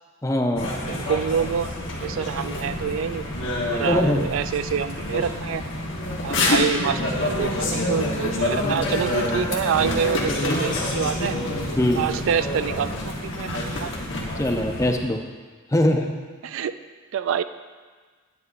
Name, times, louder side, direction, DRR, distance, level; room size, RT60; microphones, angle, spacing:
voice 1, 0.2-0.7 3.9-4.3 11.8-12.0 14.4-15.2 15.7-16.1, left 1 dB, 15° left, 4 dB, 0.5 m, -22 dB
sound 1, 0.6-14.9, left 1 dB, 65° left, 1.3 m, -27 dB
voice 2, 0.9-3.2 3.7-5.6 6.2-11.4 12.0-14.0 16.4-16.8 17.1-17.4, right 7 dB, 70° right, 12 dB, 0.3 m, -27 dB
9.7 x 9.5 x 2.5 m, 1.5 s
head